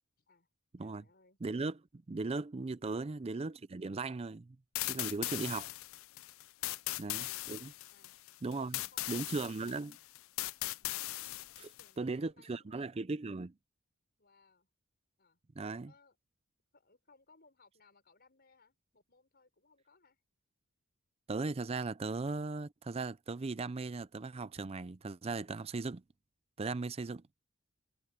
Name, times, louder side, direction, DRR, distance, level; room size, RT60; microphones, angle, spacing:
voice 1, 0.2-0.5 0.8-1.4 2.8-3.1 6.6-7.4 7.9-8.1 8.5-9.9 10.8-10.9 11.6-13.1 14.2-14.7 15.2-15.4 15.8-16.2 16.7-20.2, left 3 dB, 45° left, 6.3 m, -66 dB
voice 2, 1.4-4.6 4.8-5.7 7.0-7.2 7.5-7.7 8.4-8.8 9.1-9.9 11.6-11.7 12.0-13.5 15.6-15.9 21.3-26.0 26.6-27.2, right 3 dB, 30° right, 0.4 m, -37 dB
sound 1, 4.7-11.9, left 17 dB, 65° left, 0.4 m, -39 dB
head